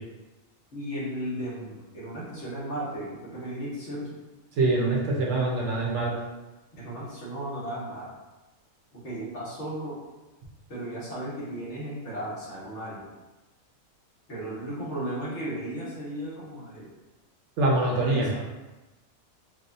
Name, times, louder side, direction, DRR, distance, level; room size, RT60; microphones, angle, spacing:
voice 1, 0.7-4.2 6.7-8.1 8.9-10.0 10.7-13.1 14.3-16.9 17.8-18.4, right 1 dB, 60° left, -8 dB, 1.5 m, -35 dB
voice 2, 4.6-6.1 17.6-18.3, right 2 dB, 65° right, -2 dB, 1.1 m, -24 dB
4.7 x 2.3 x 2.6 m, 1.1 s
omnidirectional pair, 1.4 m